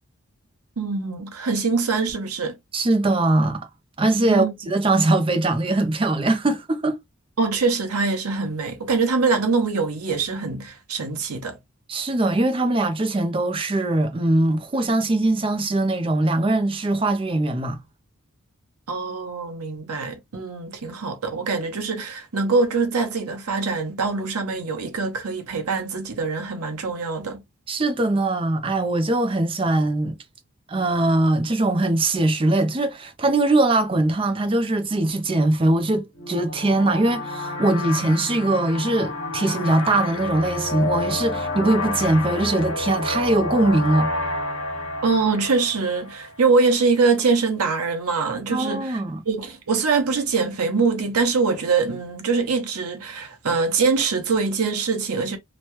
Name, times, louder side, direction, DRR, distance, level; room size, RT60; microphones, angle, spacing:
voice 1, 0.8-2.5 4.2-4.5 7.4-11.6 18.9-27.4 45.0-49.0 49.3-55.4, right 4 dB, 90° right, 0.8 m, -23 dB
voice 2, 2.7-3.7 4.0-7.0 11.9-17.8 27.7-30.1 30.7-44.1 48.5-49.2, right 2 dB, 25° right, 0.4 m, -21 dB
sound 1, 36.2-46.5, left 2 dB, 60° left, 1.2 m, -29 dB
2.9 x 2.2 x 2.9 m
head